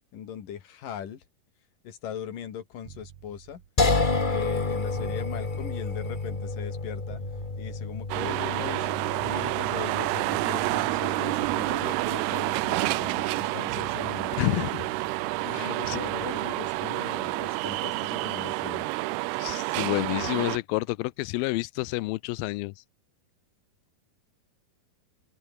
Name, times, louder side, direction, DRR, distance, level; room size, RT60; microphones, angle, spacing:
voice 1, 0.1-1.2 1.8-3.6 4.3-7.2 7.6-8.9 9.2-14.7 15.4-18.9, left 9 dB, 60° left, 3.8 m, -39 dB
sound 1, 2.9-6.8 7.1-11.1 11.4-12.3 12.5-13.4 13.7-17.7 18.9-19.1, right 10 dB, 55° right, 2.5 m, -48 dB
sound 2, 3.8-16.8, left 3 dB, 30° left, 0.8 m, -32 dB
sound 3, 8.1-20.6, right 22 dB, 85° right, 2.6 m, -29 dB
voice 2, 14.4-14.9 15.5-16.0 19.4-22.8, left 20 dB, 80° left, 2.2 m, -29 dB
open air
omnidirectional pair, 4.5 m